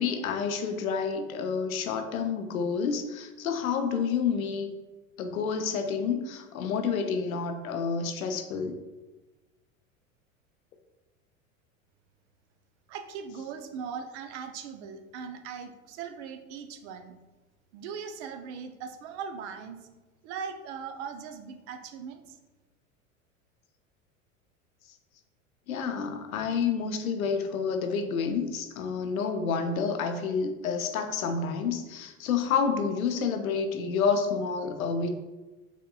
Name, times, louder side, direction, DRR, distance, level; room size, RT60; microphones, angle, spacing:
voice 1, 0.0-4.7 5.2-8.8 25.7-35.2, left 5 dB, 85° left, 6 dB, 0.6 m, -29 dB
voice 2, 12.9-17.1 17.7-19.8 20.2-22.4, right 6 dB, 55° right, 7 dB, 0.6 m, -39 dB
5.1 x 3.6 x 2.3 m, 1.2 s
hypercardioid pair, 90°, 41 cm